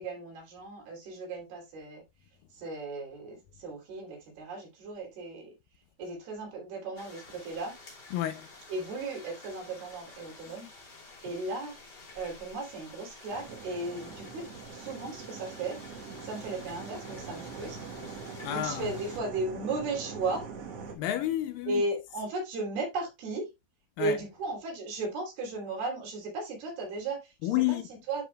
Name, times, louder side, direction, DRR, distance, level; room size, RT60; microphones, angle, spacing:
voice 1, 0.0-2.0 2.6-5.5 6.0-7.7 8.7-10.7 11.2-11.8 12.1-15.8 16.2-17.8 18.5-20.5 21.7-23.5 24.0-27.8 28.1-28.2, right 3 dB, 80° right, 5.0 m, -35 dB
sound 1, 7.0-19.2, left 3 dB, 30° left, 3.0 m, -50 dB
voice 2, 8.1-8.5 11.3-11.4 18.4-18.9 21.0-21.8 24.0-24.2 27.4-27.9, left 13 dB, 80° left, 2.1 m, -30 dB
sound 2, 13.3-21.0, right 5 dB, 60° right, 1.7 m, -43 dB
12.5 x 5.0 x 2.2 m
omnidirectional pair, 4.4 m